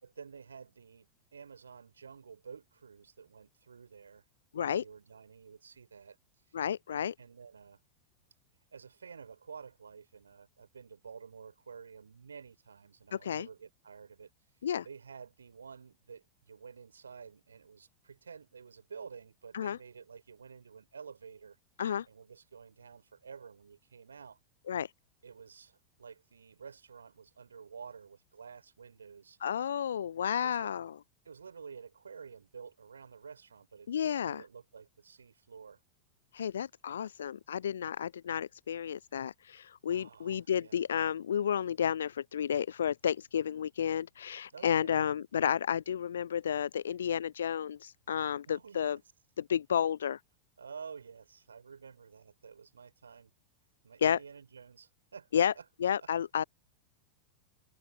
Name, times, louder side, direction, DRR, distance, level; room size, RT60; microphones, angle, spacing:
voice 1, 0.0-4.2 4.5-6.2 6.5-6.6 6.9-7.8 8.7-14.3 14.8-21.6 22.1-24.4 25.2-29.4 30.4-30.7 31.2-35.8 39.9-40.8 44.5-45.0 48.5-48.8 50.6-53.3 53.8-55.6 56.0-56.1, right 6 dB, 70° right, 4.0 m, -50 dB
voice 2, 4.5-4.8 6.5-7.1 13.1-13.5 14.6-14.8 19.5-19.8 21.8-22.0 24.7-24.9 29.4-31.0 33.9-34.4 36.3-49.0 49.4-50.2 54.0-54.2 55.3-55.5 55.8-56.4, left 8 dB, 65° left, 0.4 m, -31 dB
open air
figure-of-eight pair, 90°, 0 cm